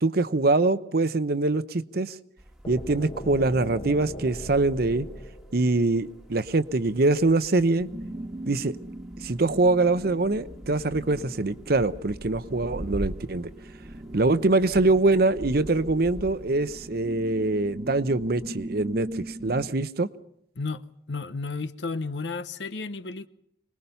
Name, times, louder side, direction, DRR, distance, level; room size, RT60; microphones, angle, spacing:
voice 1, 0.0-2.2 2.7-5.1 5.5-7.9 8.5-8.8 9.2-13.5 14.1-20.1, right 2 dB, 55° right, 0.8 m, -24 dB
sound 1, 2.4-16.9, equal, ahead, 1.5 m, -44 dB
sound 2, 2.6-6.5, equal, 30° left, 1.2 m, -39 dB
sound 3, 7.7-19.7, right 1 dB, 30° right, 1.1 m, -41 dB
voice 2, 21.1-23.3, left 3 dB, 70° left, 0.9 m, -32 dB
25.5 x 20.0 x 5.6 m
head